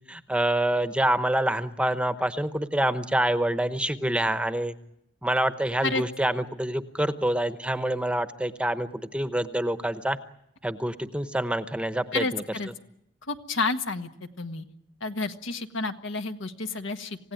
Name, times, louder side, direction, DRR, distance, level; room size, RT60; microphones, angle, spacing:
voice 1, 0.1-4.7 5.2-10.2 10.6-12.4, right 1 dB, 5° right, 10 dB, 0.9 m, -26 dB
voice 2, 12.1-12.7 13.2-14.1 14.4-14.6 15.0-17.2, left 3 dB, 85° left, 7 dB, 1.6 m, -30 dB
27.5 x 16.5 x 9.2 m, 0.81 s
head